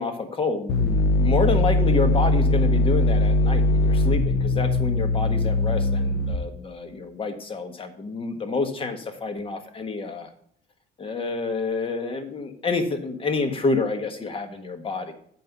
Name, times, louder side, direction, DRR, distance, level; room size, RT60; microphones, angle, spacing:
voice 1, 0.0-10.3 11.0-15.1, left 3 dB, 30° left, 7 dB, 1.4 m, -28 dB
sound 1, 0.7-6.7, left 2 dB, 80° left, 0.8 m, -21 dB
7.6 x 5.7 x 5.4 m, 0.66 s
cardioid pair, 110°, 17 cm